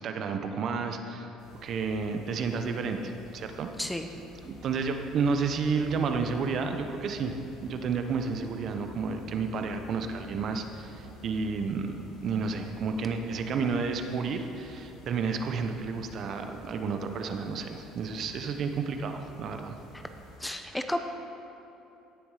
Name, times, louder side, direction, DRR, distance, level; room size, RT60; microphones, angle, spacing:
voice 1, 0.0-1.3 1.6-3.7 4.4-19.8, right 5 dB, 50° right, 6 dB, 0.9 m, -31 dB
sound 1, 1.4-20.4, left 1 dB, 65° left, 3.0 m, -50 dB
voice 2, 20.4-21.0, left 1 dB, 5° left, 6 dB, 0.7 m, -32 dB
17.0 x 7.0 x 5.0 m, 2.9 s
cardioid pair, 115°, 0 cm